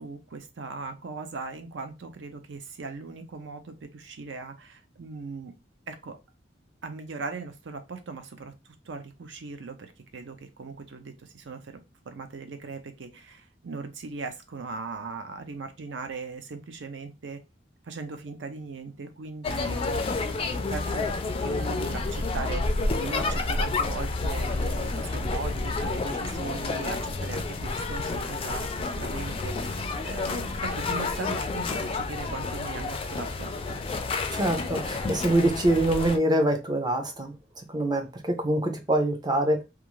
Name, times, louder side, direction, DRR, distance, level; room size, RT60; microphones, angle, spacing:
voice 1, 0.0-5.5 5.9-6.2 6.8-8.5 8.9-17.4 17.8-20.2 20.4-21.1 21.4-28.7 29.0-33.8, right 4 dB, 75° right, 8 dB, 0.5 m, -39 dB
sound 1, 19.4-36.2, left 3 dB, 30° left, 0.3 m, -30 dB
voice 2, 34.3-39.6, right 1 dB, 25° right, 5 dB, 0.5 m, -25 dB
2.4 x 2.3 x 3.0 m, 0.26 s
head